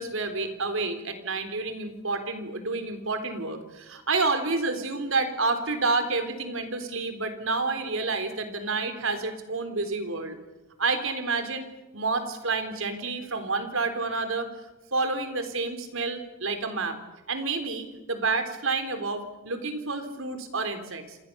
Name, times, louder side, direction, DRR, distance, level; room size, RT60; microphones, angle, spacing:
voice 1, 0.0-10.4 10.8-11.7 11.9-14.5 14.9-17.0 17.3-21.2, right 3 dB, 75° right, 8 dB, 3.8 m, -29 dB
28.0 x 27.0 x 7.0 m, 1.1 s
head